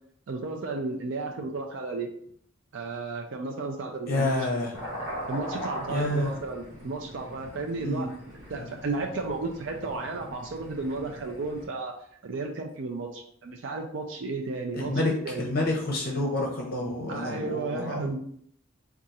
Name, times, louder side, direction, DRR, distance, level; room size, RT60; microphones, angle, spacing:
voice 1, 0.3-2.1 2.7-4.6 5.3-8.1 8.5-11.9 12.2-15.5 17.1-18.2, right 3 dB, 65° right, 2 dB, 0.4 m, -33 dB
voice 2, 4.1-4.7 5.9-6.3 7.8-8.1 8.6-8.7 14.7-15.1 15.4-18.1, left 1 dB, 45° left, -1 dB, 0.6 m, -28 dB
sound 1, 4.7-11.6, equal, 15° right, 1.4 m, -40 dB
3.7 x 2.4 x 4.1 m, 0.65 s
head